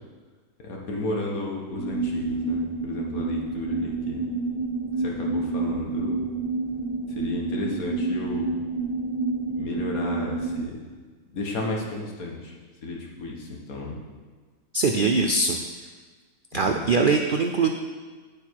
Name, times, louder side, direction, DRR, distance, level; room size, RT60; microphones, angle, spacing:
voice 1, 0.6-4.3 5.0-6.3 7.2-8.6 9.5-10.8 11.3-12.5 12.8-14.0 16.5-17.0, left 2 dB, 75° left, -1 dB, 1.9 m, -33 dB
sound 1, 1.8-10.6, right 3 dB, 20° left, 2.5 m, -29 dB
voice 2, 14.7-15.6 16.5-17.7, right 4 dB, 65° right, 4 dB, 0.5 m, -22 dB
9.2 x 7.7 x 4.7 m, 1.4 s
omnidirectional pair, 1.5 m